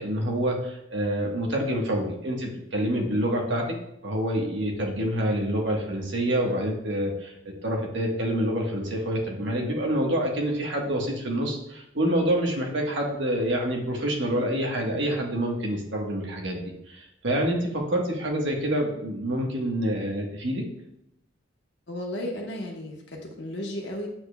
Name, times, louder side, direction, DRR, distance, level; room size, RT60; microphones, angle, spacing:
voice 1, 0.0-3.6 4.0-7.3 7.6-16.6 16.9-20.6, right 1 dB, 75° right, 0 dB, 1.4 m, -27 dB
voice 2, 21.9-24.1, left 1 dB, 65° left, -1 dB, 1.2 m, -34 dB
7.6 x 6.7 x 2.3 m, 0.79 s
head